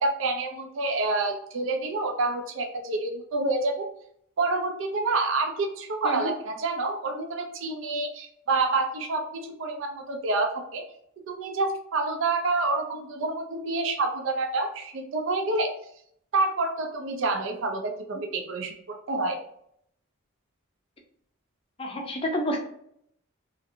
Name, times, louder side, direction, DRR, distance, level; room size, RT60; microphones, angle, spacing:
voice 1, 0.0-3.9 4.4-10.8 11.3-15.7 16.3-19.4, right 3 dB, 65° right, 3 dB, 0.4 m, -28 dB
voice 2, 21.8-22.6, equal, 25° left, 2 dB, 0.5 m, -29 dB
2.5 x 2.5 x 2.6 m, 0.69 s
head